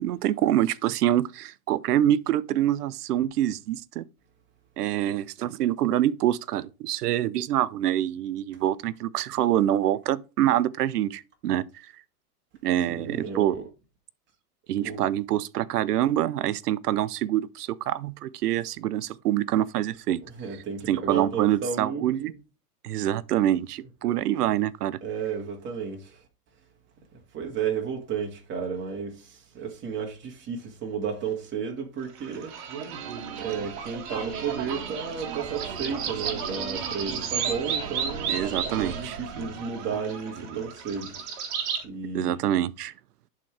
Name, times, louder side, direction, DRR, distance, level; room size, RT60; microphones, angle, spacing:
voice 1, 0.0-4.0 4.8-11.6 12.6-13.5 14.7-20.2 20.9-22.3 22.8-25.0 38.3-39.2 42.1-42.9, right 12 dB, 90° right, 0.7 m, -25 dB
voice 2, 12.9-13.6 14.8-15.0 20.4-22.3 25.0-26.2 27.3-32.6 33.4-38.4 38.8-41.1 41.8-42.3, right 6 dB, 25° right, 2.0 m, -33 dB
sound 1, 32.1-41.8, right 7 dB, 50° right, 1.8 m, -33 dB
11.5 x 3.8 x 3.3 m
supercardioid pair, 140°, 45 cm